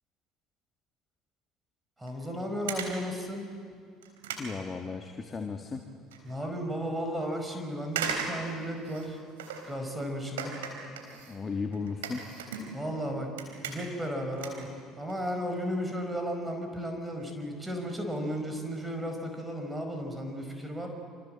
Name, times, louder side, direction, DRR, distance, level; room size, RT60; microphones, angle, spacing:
voice 1, 2.0-3.5 6.2-9.2 9.7-10.6 12.7-13.3 13.6-20.9, equal, 15° right, 4 dB, 4.9 m, -34 dB
sound 1, 2.1-2.2 2.7-3.1 3.6-3.7 4.0-5.4 5.7-6.2 6.6-6.7 7.9-9.8 10.4-13.0 13.3-14.1 14.4-15.3 15.6-15.8 16.5-16.6 16.9-17.0 17.2-17.3 17.6-17.8 18.2-18.4 18.6-18.7, right 6 dB, 85° right, 3.8 m, -38 dB
voice 2, 4.4-5.8 11.3-12.2, left 4 dB, 30° left, 4 dB, 1.9 m, -35 dB
27.0 x 26.5 x 7.7 m, 2.2 s
hypercardioid pair, 65°, 0 cm